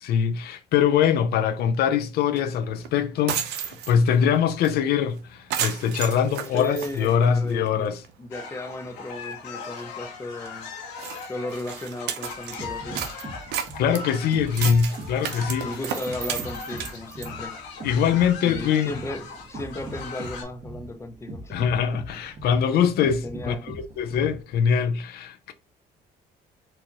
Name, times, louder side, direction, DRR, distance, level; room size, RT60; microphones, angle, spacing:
voice 1, 0.0-8.0 13.8-15.7 17.8-18.9 21.5-25.5, left 7 dB, 70° left, 0.5 m, -23 dB
sound 1, 2.4-2.5 2.8-2.9 3.2-4.2 4.6-4.7 5.0-5.2 5.5-7.7 8.0-8.1 8.7-8.8 9.1-9.3 9.8-9.9 10.5-10.6 11.0-12.6 13.0-17.3, right 9 dB, 90° right, 0.7 m, -33 dB
voice 2, 6.5-7.9 8.2-10.7 11.3-13.2 15.5-17.6 18.4-21.5 23.2-23.7, left 1 dB, 15° left, 0.7 m, -35 dB
sound 2, 8.3-20.4, left 5 dB, 85° left, 1.2 m, -39 dB
sound 3, 12.3-24.5, right 2 dB, 40° right, 1.2 m, -40 dB
4.3 x 2.4 x 2.9 m
cardioid pair, 110°, 17 cm